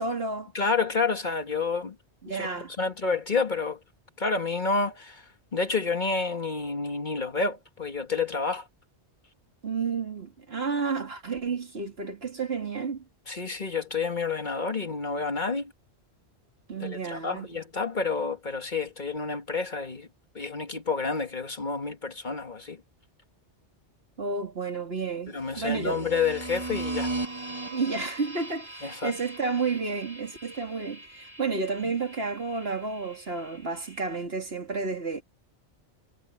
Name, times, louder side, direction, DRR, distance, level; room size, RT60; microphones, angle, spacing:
voice 1, 0.0-0.5 2.2-2.7 9.6-13.0 16.7-17.5 24.2-26.0 27.7-35.2, right 4 dB, 60° right, 2.7 m, -31 dB
voice 2, 0.5-2.0 2.3-2.5 2.8-3.8 4.2-8.7 13.3-15.7 16.8-20.1 20.3-22.8 25.3-27.1 28.8-29.1 31.8-31.9, left 4 dB, 45° left, 1.7 m, -29 dB
sound 1, 25.4-34.2, right 2 dB, 25° right, 2.3 m, -39 dB
omnidirectional pair, 1.2 m